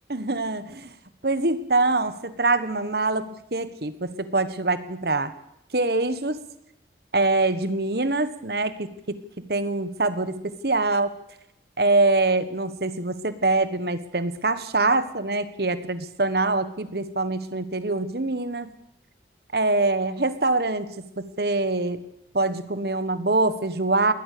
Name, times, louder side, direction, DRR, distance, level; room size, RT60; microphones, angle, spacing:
voice 1, 0.1-0.9 1.2-5.3 5.7-6.4 7.1-11.1 11.8-18.7 19.5-22.0 22.3-24.1, right 2 dB, 60° right, 13 dB, 1.4 m, -24 dB
21.0 x 18.5 x 6.9 m, 0.79 s
head